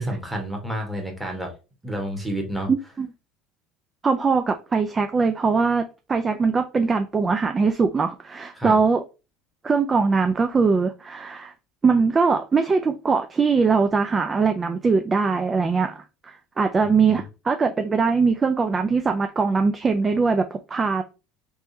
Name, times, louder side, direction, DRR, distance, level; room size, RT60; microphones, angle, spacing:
voice 1, 0.0-1.5 1.8-2.7 8.6-8.8 16.8-17.1, right 1 dB, 5° right, 1.2 m, -29 dB
voice 2, 2.7-3.1 4.0-9.0 9.6-11.5 11.8-21.0, right 4 dB, 25° right, 0.3 m, -21 dB
3.5 x 3.0 x 2.7 m
supercardioid pair, 120°, 0 cm